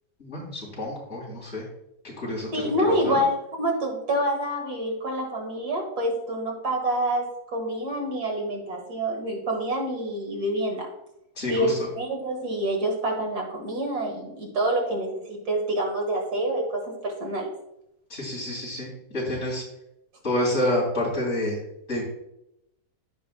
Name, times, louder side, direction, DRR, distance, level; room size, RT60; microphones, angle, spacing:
voice 1, 0.2-1.6 2.0-2.7 3.0-3.2 11.3-11.9 18.1-19.6 20.2-21.6 21.9-22.0, left 1 dB, 45° left, -5 dB, 3.3 m, -28 dB
voice 2, 2.5-10.9 11.5-11.7 12.0-17.5, right 1 dB, 85° right, 1 dB, 2.3 m, -27 dB
14.5 x 5.2 x 2.3 m, 0.83 s
omnidirectional pair, 1.7 m